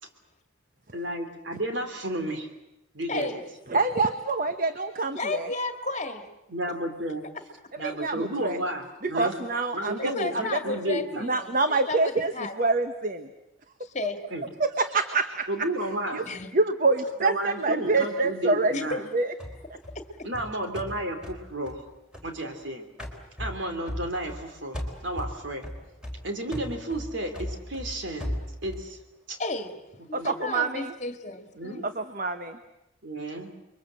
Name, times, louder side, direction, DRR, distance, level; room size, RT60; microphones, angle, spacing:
voice 1, 0.9-2.5 2.9-3.4 6.5-7.3 7.8-9.3 9.7-11.2 14.3-14.5 15.5-16.2 17.2-19.0 20.2-21.8 22.2-22.9 23.4-25.7 26.2-28.4 28.6-29.0 29.3-29.4 30.2-30.3 31.6-31.8 33.0-33.5, right 1 dB, 65° right, 5 dB, 3.2 m, -32 dB
voice 2, 3.1-3.5 5.2-6.3 10.0-12.5 13.8-14.2 16.2-16.5 18.7-19.0 20.0-20.3 29.4-31.9, left 2 dB, 35° left, 7 dB, 2.0 m, -33 dB
voice 3, 3.7-5.5 7.8-8.6 9.0-10.1 10.5-10.6 11.2-13.3 14.6-15.5 16.1-16.2 16.5-18.7 19.1-19.3 30.1-30.9 31.8-32.6, right 3 dB, 40° right, 8 dB, 1.1 m, -26 dB
sound 1, 19.4-22.6 23.0-24.5 24.7-28.9, left 1 dB, 5° right, 4.1 m, -37 dB
30.0 x 23.0 x 7.7 m, 0.90 s
head